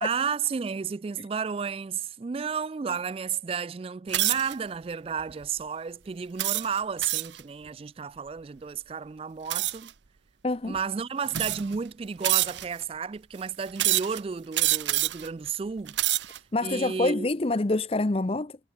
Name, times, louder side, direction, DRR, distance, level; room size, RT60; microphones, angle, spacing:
voice 1, 0.0-9.9 10.7-16.0 16.6-17.3, right 6 dB, 30° right, 0.3 m, -32 dB
sound 1, 4.1-4.5 5.2-5.4 6.4-7.4 9.5-9.9 10.7-10.8 11.3-11.8 12.2-12.8 13.8-14.2 14.5-15.3 15.8-16.4, right 16 dB, 80° right, 0.8 m, -26 dB
voice 2, 10.4-10.8 16.5-18.6, left 2 dB, 30° left, 0.6 m, -26 dB
head